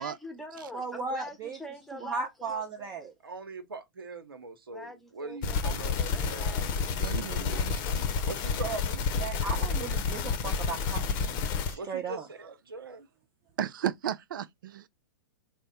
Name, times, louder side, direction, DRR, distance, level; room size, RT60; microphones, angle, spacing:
voice 1, 0.0-3.1 4.7-7.1, left 1 dB, ahead, 0.9 m, -44 dB
voice 2, 0.7-1.6 2.0-3.1 9.2-11.0 11.3-12.2, right 4 dB, 30° right, 0.8 m, -36 dB
voice 3, 3.2-6.7 8.3-9.1 11.7-13.1, right 4 dB, 80° right, 0.8 m, -41 dB
sound 1, 5.4-11.7, left 5 dB, 35° left, 0.8 m, -30 dB
voice 4, 6.9-8.1 13.6-14.9, right 10 dB, 65° right, 0.5 m, -35 dB
3.4 x 2.1 x 4.1 m
figure-of-eight pair, 105°, 12 cm